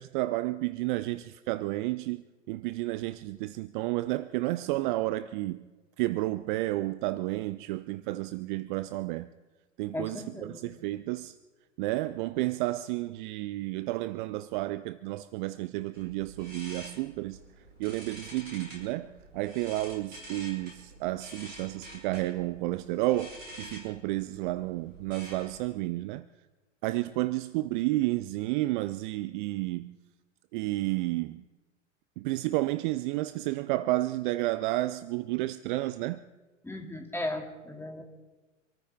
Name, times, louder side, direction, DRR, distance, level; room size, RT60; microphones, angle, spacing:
voice 1, 0.0-5.7 6.0-9.3 9.8-11.3 11.8-17.4 17.8-26.2 26.8-30.0 30.5-31.4 32.2-36.3, right 18 dB, 40° right, 0.5 m, -31 dB
voice 2, 9.9-10.7 36.6-38.0, left 1 dB, 5° left, 2.6 m, -36 dB
sound 1, 15.9-25.7, right 1 dB, 80° right, 5.6 m, -48 dB
26.5 x 14.0 x 3.6 m
figure-of-eight pair, 90°, 38 cm